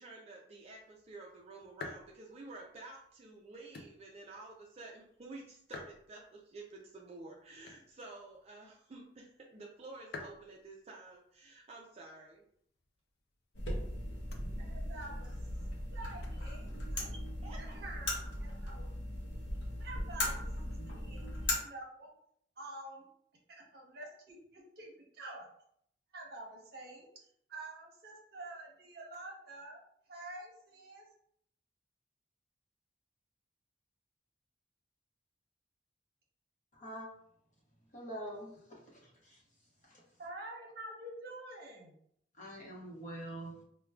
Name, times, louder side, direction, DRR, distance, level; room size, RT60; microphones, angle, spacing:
voice 1, 0.0-12.4 17.1-17.6, right 2 dB, 35° right, -1 dB, 0.4 m, -51 dB
sound 1, 0.5-17.6, left 3 dB, 60° left, 0.4 m, -55 dB
sound 2, 13.5-21.6, left 1 dB, 80° left, 0.9 m, -38 dB
voice 2, 14.6-15.3 15.9-17.0 17.6-18.8 19.8-20.4 20.8-22.1 22.6-23.1 23.5-25.5 26.1-27.1 27.5-29.8 30.1-31.0 40.2-41.9, right 2 dB, 55° right, -2 dB, 0.8 m, -48 dB
voice 3, 36.7-37.1 37.9-39.4 39.9-40.0 42.4-43.6, right 1 dB, 40° left, -3 dB, 0.9 m, -45 dB
4.4 x 2.1 x 2.3 m, 0.68 s
head